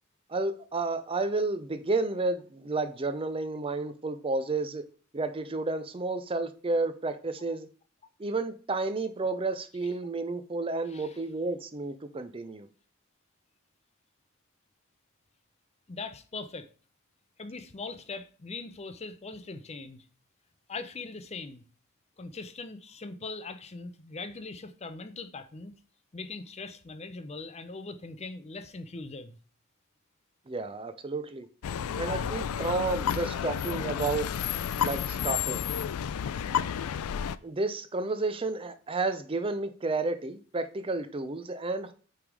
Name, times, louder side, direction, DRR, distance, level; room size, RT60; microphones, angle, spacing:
voice 1, 0.3-4.8 5.1-7.7 8.2-12.7 30.5-31.5 32.0-34.3 34.8-35.6 37.4-41.9, right 3 dB, 25° right, 0.5 m, -31 dB
voice 2, 15.9-16.7 17.4-20.1 20.7-21.6 22.2-25.7 26.1-29.4, left 3 dB, 30° left, 0.6 m, -41 dB
sound 1, 31.6-37.4, left 8 dB, 80° left, 0.4 m, -31 dB
8.6 x 3.5 x 4.7 m
head